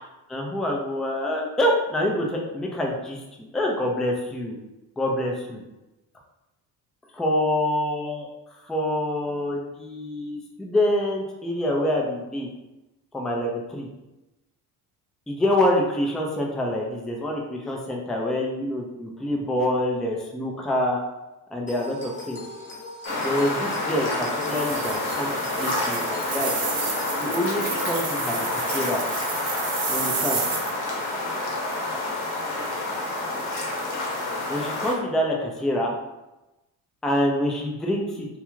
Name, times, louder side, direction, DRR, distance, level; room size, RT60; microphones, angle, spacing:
voice 1, 0.3-4.6 5.0-5.6 7.1-12.5 13.1-13.9 15.3-21.0 21.5-22.4 23.2-26.5 27.2-29.0 29.9-30.4 34.5-35.9 37.0-38.3, left 1 dB, ahead, -1 dB, 0.3 m, -26 dB
sound 1, 21.7-27.2, left 2 dB, 25° left, 0.7 m, -39 dB
sound 2, 23.0-34.9, left 2 dB, 65° left, 0.9 m, -28 dB
sound 3, 24.4-30.7, right 5 dB, 50° right, 0.7 m, -32 dB
2.4 x 2.3 x 3.0 m, 1.0 s
hypercardioid pair, 60°, 50 cm